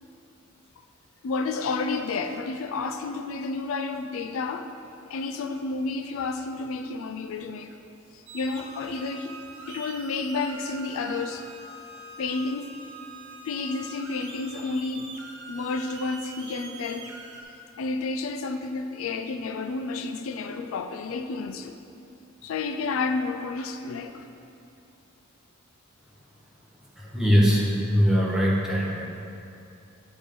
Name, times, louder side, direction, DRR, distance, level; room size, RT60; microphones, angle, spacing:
voice 1, 1.2-4.7 5.1-7.7 8.1-9.4 9.7-11.5 12.2-12.7 13.4-15.2 15.5-17.1 17.8-21.8 22.4-24.3, left 3 dB, 80° left, 7 dB, 0.4 m, -31 dB
sound 1, 8.3-17.4, right 3 dB, 60° right, 0.8 m, -44 dB
voice 2, 27.0-29.0, equal, ahead, -5 dB, 1.0 m, -21 dB
9.6 x 3.5 x 5.0 m, 2.6 s
head